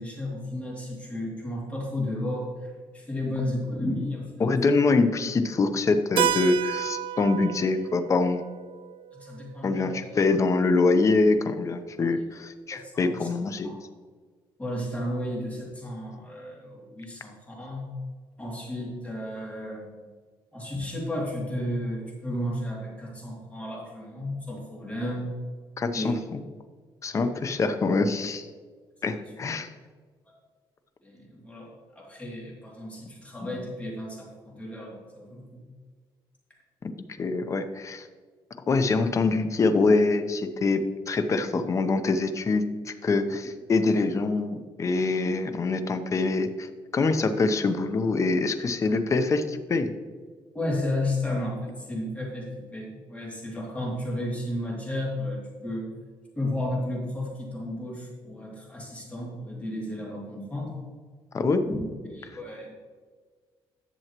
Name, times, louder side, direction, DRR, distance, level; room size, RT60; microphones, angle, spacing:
voice 1, 0.0-4.5 9.1-10.1 12.7-13.3 13.6-13.8 14.6-18.0 18.4-20.0 20.5-25.3 25.9-26.1 31.0-35.6 50.5-55.9 56.3-60.7 61.7-61.8 62.1-62.7, left 1 dB, 15° left, -3 dB, 2.6 m, -33 dB
voice 2, 4.4-8.4 9.6-13.7 25.8-26.4 27.0-28.5 29.0-29.7 36.8-36.9 37.2-38.1 38.7-49.9 61.3-61.6, left 3 dB, 35° left, 9 dB, 0.7 m, -24 dB
Keyboard (musical), 6.2-10.6, right 10 dB, 65° right, 0.4 m, -32 dB
11.0 x 7.1 x 3.0 m, 1.5 s
cardioid pair, 125°, 9 cm